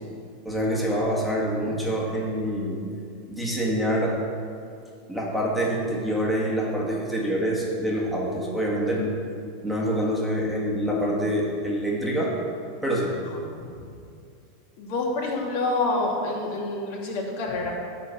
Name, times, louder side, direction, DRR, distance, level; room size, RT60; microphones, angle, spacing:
voice 1, 0.4-2.9 3.3-4.2 5.1-9.1 9.6-12.4 12.8-13.2, equal, ahead, -4 dB, 1.8 m, -26 dB
voice 2, 14.8-17.7, left 2 dB, 60° left, -1 dB, 2.4 m, -27 dB
11.0 x 4.3 x 7.4 m, 2.4 s
supercardioid pair, 135°, 0 cm